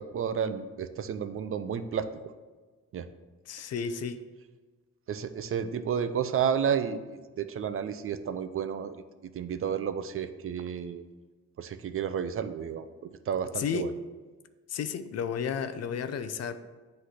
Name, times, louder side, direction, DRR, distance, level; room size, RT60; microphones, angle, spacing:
voice 1, 0.0-2.1 2.9-3.1 5.1-11.0 11.6-13.9, right 7 dB, 45° right, 10 dB, 0.5 m, -31 dB
voice 2, 3.5-4.2 13.6-13.9 14.7-16.6, left 6 dB, 55° left, 11 dB, 0.5 m, -32 dB
8.0 x 3.2 x 5.8 m, 1.3 s
cardioid pair, 90°, 30 cm